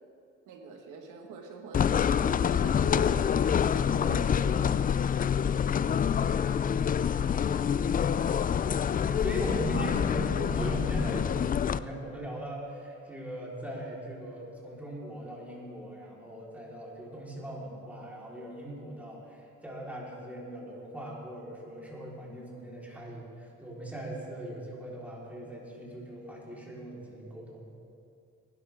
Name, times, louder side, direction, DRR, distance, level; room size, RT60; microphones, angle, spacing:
voice 1, 0.5-4.8, right 4 dB, 90° right, 3 dB, 1.9 m, -44 dB
sound 1, 1.7-11.8, left 8 dB, 30° left, 0.3 m, -26 dB
voice 2, 5.7-6.6 7.0-27.7, right 1 dB, 5° right, -5 dB, 4.3 m, -40 dB
20.0 x 12.0 x 3.7 m, 2.5 s
cardioid pair, 90°, 30 cm